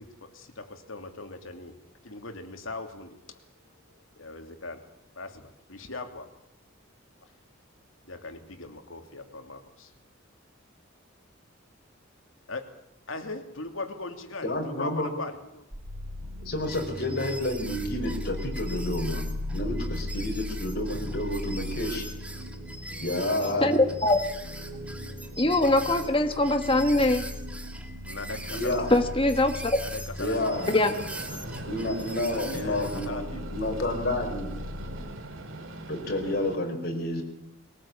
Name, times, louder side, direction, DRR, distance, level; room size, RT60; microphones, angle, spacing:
voice 1, 0.0-1.8 2.0-4.9 5.2-6.3 7.2-7.3 8.1-9.9 12.5-12.7 13.1-15.7 28.1-29.0 29.8-30.6 32.3-33.5, left 3 dB, 80° left, 6 dB, 2.8 m, -40 dB
voice 2, 14.4-15.1 16.4-19.2 19.5-22.0 22.9-23.7 28.5-28.9 30.2-30.7 31.7-33.2 33.5-34.5 35.9-37.2, left 1 dB, 50° left, 2 dB, 5.4 m, -30 dB
sound 1, 15.7-35.0, left 1 dB, 30° right, 6.1 m, -38 dB
sound 2, 16.6-33.1, right 1 dB, 5° right, 2.3 m, -42 dB
voice 3, 23.4-24.2 25.4-27.2 28.9-29.8 30.7-31.0, left 1 dB, 25° left, 6 dB, 1.5 m, -22 dB
Train, 30.5-36.6, right 2 dB, 75° right, 2.6 m, -41 dB
21.5 x 19.0 x 8.8 m, 0.81 s
head